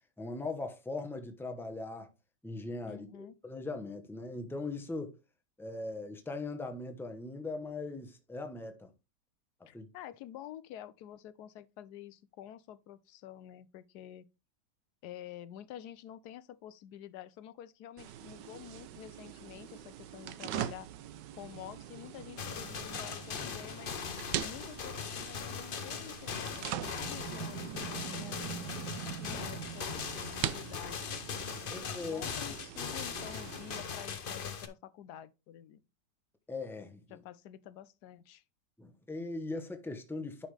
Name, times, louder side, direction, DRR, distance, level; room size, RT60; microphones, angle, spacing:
voice 1, 0.2-2.1 2.4-5.1 5.6-8.9 9.7-9.9 31.7-32.3 36.5-37.2 38.8-40.5, left 3 dB, ahead, 0.7 m, -40 dB
voice 2, 2.9-3.4 9.7-14.3 15.0-20.9 21.4-24.0 24.4-28.4 29.2-31.1 31.6-35.8 37.1-38.4, left 11 dB, 70° left, 1.1 m, -49 dB
sound 1, 18.0-33.8, right 11 dB, 75° right, 1.3 m, -42 dB
sound 2, 22.4-34.7, left 6 dB, 50° left, 0.7 m, -40 dB
10.0 x 5.5 x 3.3 m
omnidirectional pair, 1.9 m